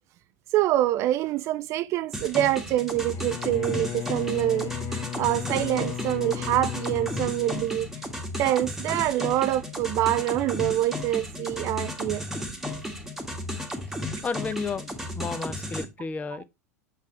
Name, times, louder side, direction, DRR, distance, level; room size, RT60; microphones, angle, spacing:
voice 1, 0.5-7.9 8.4-12.2, right 14 dB, 35° right, 0.3 m, -25 dB
sound 1, 2.1-15.8, left 1 dB, 5° right, 1.6 m, -34 dB
Bowed string instrument, 3.1-8.4, left 13 dB, 35° left, 0.4 m, -36 dB
voice 2, 14.2-16.4, left 4 dB, 15° left, 0.9 m, -32 dB
7.7 x 5.6 x 3.2 m
figure-of-eight pair, 85°, 8 cm